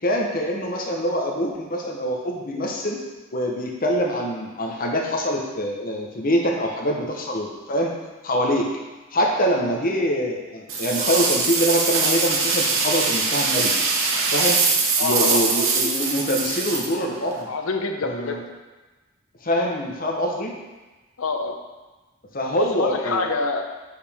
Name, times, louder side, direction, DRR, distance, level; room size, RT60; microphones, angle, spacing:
voice 1, 0.0-3.0 3.3-7.9 8.2-8.7 9.1-13.7 14.3-14.7 15.0-17.5 18.0-18.4 19.4-20.5 22.3-23.3, equal, 40° left, 0 dB, 0.9 m, -24 dB
sound 1, 10.7-17.4, right 4 dB, 70° right, 0.9 m, -22 dB
voice 2, 15.0-15.7 17.5-18.4 21.2-21.6 22.6-23.7, left 4 dB, 75° left, 4 dB, 0.7 m, -27 dB
7.7 x 4.9 x 3.5 m, 1.2 s
head